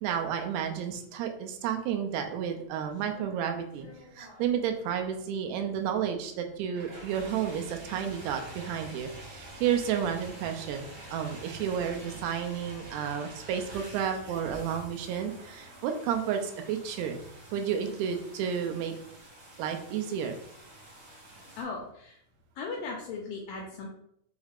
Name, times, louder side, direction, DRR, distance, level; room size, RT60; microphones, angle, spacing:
voice 1, 0.0-3.9 4.1-17.2 17.5-19.0 19.6-20.4, right 8 dB, 85° right, 5 dB, 2.7 m, -31 dB
sound 1, 2.7-21.6, right 1 dB, 55° right, 1.8 m, -48 dB
voice 2, 21.6-22.2 22.6-23.9, left 4 dB, 85° left, 0 dB, 2.0 m, -37 dB
6.3 x 2.4 x 3.4 m, 0.72 s
omnidirectional pair, 4.7 m